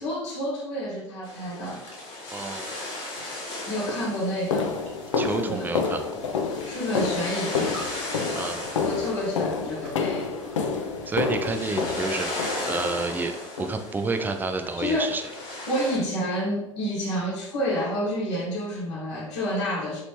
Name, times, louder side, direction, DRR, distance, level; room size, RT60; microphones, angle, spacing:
voice 1, 0.0-1.8 3.7-4.8 5.2-5.7 6.6-7.8 8.8-10.3 14.8-15.1 15.7-20.0, equal, 60° left, -4 dB, 1.0 m, -29 dB
sound 1, 1.2-16.0, left 2 dB, 35° left, 1.1 m, -37 dB
voice 2, 2.3-2.7 5.2-6.1 8.4-8.6 11.1-15.2, right 3 dB, 10° right, 6 dB, 0.3 m, -29 dB
sound 2, 3.2-3.3 3.9-13.1 13.6-13.9 14.2-14.4 14.8-15.0 15.4-15.5 16.0-16.1, left 5 dB, 75° left, 0.4 m, -29 dB
sound 3, 4.8-10.0 10.2-10.6 11.0-11.5 11.7-12.7, right 1 dB, 60° right, 1.0 m, -46 dB
3.1 x 2.8 x 3.0 m, 0.86 s
figure-of-eight pair, 75°, 16 cm